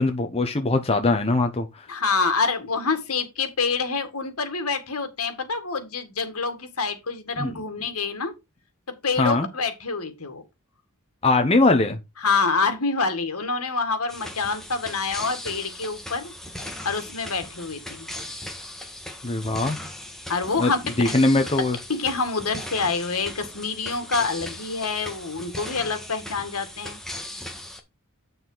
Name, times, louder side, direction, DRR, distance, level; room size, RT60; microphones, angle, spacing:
voice 1, 0.0-1.7 7.4-7.5 9.2-9.5 11.2-12.0 19.2-19.8 20.6-20.7 21.0-21.8, left 2 dB, 25° left, 0.9 m, -21 dB
voice 2, 1.9-8.3 8.9-10.4 12.2-16.3 16.8-18.1 20.3-20.8 21.0-21.1 21.9-27.0, left 4 dB, 75° left, 2.1 m, -27 dB
sound 1, 14.1-27.8, left 1 dB, ahead, 1.7 m, -38 dB
8.5 x 6.9 x 4.0 m
head